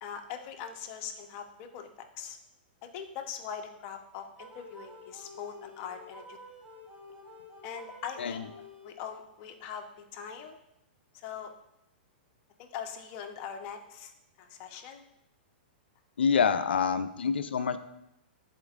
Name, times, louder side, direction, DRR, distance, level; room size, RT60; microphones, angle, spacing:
voice 1, 0.0-2.4 2.9-6.4 7.6-8.4 8.8-9.9 10.1-10.6 11.1-11.5 12.6-14.1 14.4-15.0 16.7-16.9, left 8 dB, 45° left, 5 dB, 0.9 m, -41 dB
sound 1, 4.4-9.3, left 1 dB, 20° right, 1.2 m, -50 dB
voice 2, 16.2-17.8, left 6 dB, 80° left, 11 dB, 0.5 m, -26 dB
10.5 x 4.4 x 2.5 m, 0.85 s
hypercardioid pair, 125°, 6 cm